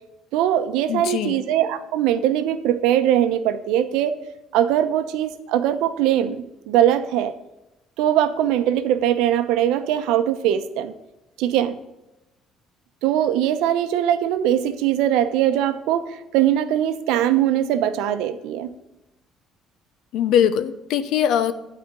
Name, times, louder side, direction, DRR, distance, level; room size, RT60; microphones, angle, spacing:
voice 1, 0.3-4.1 4.5-7.3 8.0-10.9 11.4-11.8 13.0-18.7, right 11 dB, 90° right, 10 dB, 0.8 m, -21 dB
voice 2, 0.9-1.4 20.1-21.5, left 9 dB, 60° left, 13 dB, 0.6 m, -21 dB
12.0 x 4.3 x 8.0 m, 0.96 s
cardioid pair, 175°, 0 cm